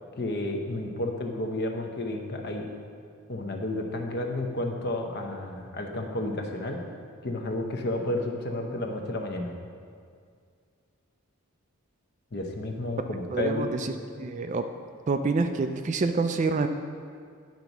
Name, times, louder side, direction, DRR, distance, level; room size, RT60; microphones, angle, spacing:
voice 1, 0.2-2.7 3.3-6.8 7.2-9.5 12.3-13.7, left 1 dB, 45° left, 3 dB, 0.8 m, -31 dB
voice 2, 13.3-14.6 15.1-16.7, right 4 dB, 35° right, 7 dB, 0.3 m, -27 dB
10.5 x 4.0 x 5.9 m, 2.2 s
head